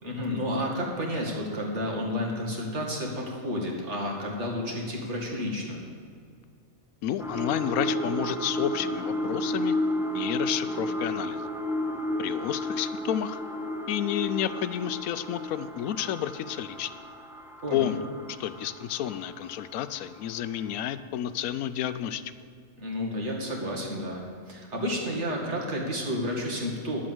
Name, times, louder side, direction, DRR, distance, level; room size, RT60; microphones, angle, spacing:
voice 1, 0.0-5.8 17.6-18.0 22.8-27.0, equal, 55° right, -1 dB, 2.3 m, -31 dB
voice 2, 7.0-9.7 10.1-11.4 12.2-13.4 13.9-16.9 17.7-18.0 18.4-22.2, left 11 dB, 80° left, 13 dB, 1.0 m, -30 dB
sound 1, 7.2-20.3 20.8-20.9, left 1 dB, 5° right, 0.5 m, -33 dB
10.0 x 7.6 x 7.9 m, 2.3 s
omnidirectional pair, 1.5 m